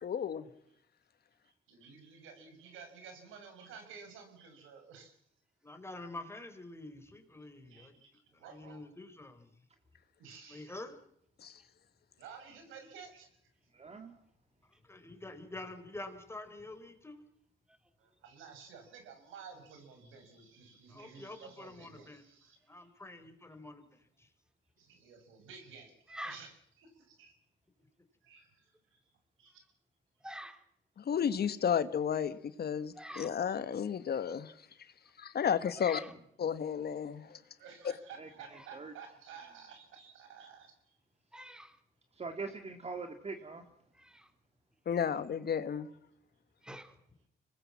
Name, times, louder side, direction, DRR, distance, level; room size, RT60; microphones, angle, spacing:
voice 1, 0.0-0.4 11.4-11.6 31.0-34.5 35.2-36.0 36.4-37.4 44.8-45.9, left 8 dB, 55° left, 1.6 m, -32 dB
voice 2, 1.4-5.2 7.6-8.8 10.2-10.7 12.2-13.4 18.0-22.9 24.8-26.5 26.8-27.3 28.2-29.0 29.4-29.6 37.6-41.0 44.9-45.2, right 6 dB, 90° right, 6.6 m, -53 dB
voice 3, 5.6-8.0 8.3-9.5 10.5-10.9 14.8-17.2 20.9-22.2 22.7-24.3, left 2 dB, 10° left, 4.1 m, -47 dB
voice 4, 13.7-14.2 38.2-38.3 38.7-38.9 42.2-43.6, right 4 dB, 30° right, 2.2 m, -42 dB
voice 5, 30.2-30.6 33.0-33.3 35.8-36.1 38.5-38.7 41.3-41.8 43.9-44.3 46.6-46.9, equal, 5° right, 2.8 m, -46 dB
25.5 x 20.0 x 7.5 m
cardioid pair, 90°, 20 cm